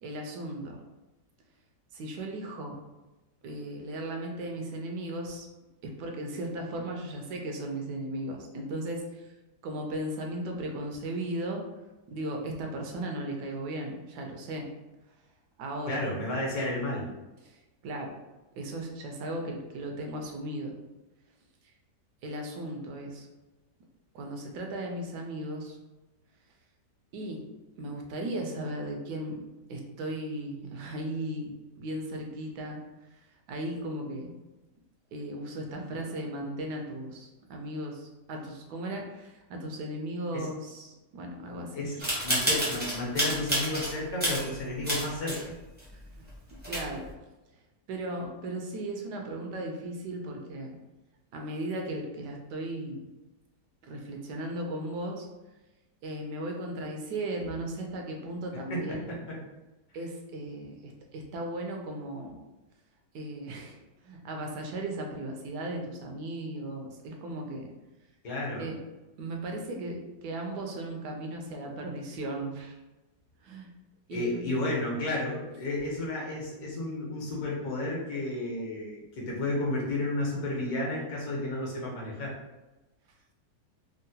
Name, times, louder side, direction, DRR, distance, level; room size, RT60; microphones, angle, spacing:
voice 1, 0.0-0.8 1.9-2.8 3.4-5.5 5.8-9.3 9.6-11.6 12.1-14.7 15.6-16.0 17.4-17.6 17.8-18.2 18.6-20.8 22.2-23.3 24.1-25.8 27.1-27.5 27.8-32.8 33.1-33.2 33.5-34.3 35.1-42.3 45.9-46.3 46.7-47.1 47.9-50.8 51.3-53.1 53.8-55.3 56.0-59.1 59.9-62.4 63.1-63.8 64.0-67.7 68.6-68.8 69.2-72.8 73.4-73.7 74.1-74.7, right 1 dB, 75° right, 2 dB, 1.2 m, -36 dB
voice 2, 15.9-17.1 40.3-40.5 41.7-42.0 42.2-45.5 58.7-59.4 68.2-68.7 74.1-82.3, left 1 dB, 65° left, -3 dB, 1.3 m, -32 dB
sound 1, 42.0-43.9 44.2-45.4 45.8-45.9 46.3-46.4 46.6-47.1, equal, 10° right, 0.5 m, -29 dB
3.6 x 2.1 x 2.7 m, 1.1 s
omnidirectional pair, 1.8 m